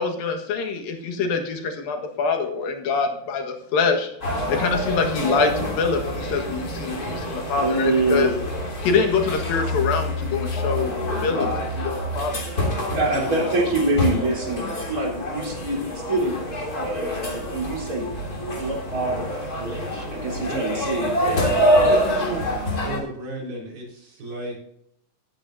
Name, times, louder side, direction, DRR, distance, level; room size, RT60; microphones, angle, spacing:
voice 1, 0.0-4.1 4.5-8.3 8.8-12.4, left 5 dB, 75° left, 4 dB, 3.3 m, -25 dB
sound 1, 4.2-23.0, equal, 25° left, 3.2 m, -26 dB
voice 2, 7.6-8.4 12.9-18.1 18.6-21.1, right 2 dB, 25° right, -2 dB, 3.8 m, -25 dB
voice 3, 13.1-13.6 20.5-20.7 21.8-22.5 22.8-24.6, right 2 dB, 75° right, -3 dB, 6.2 m, -33 dB
18.0 x 8.9 x 2.7 m, 0.72 s
omnidirectional pair, 4.2 m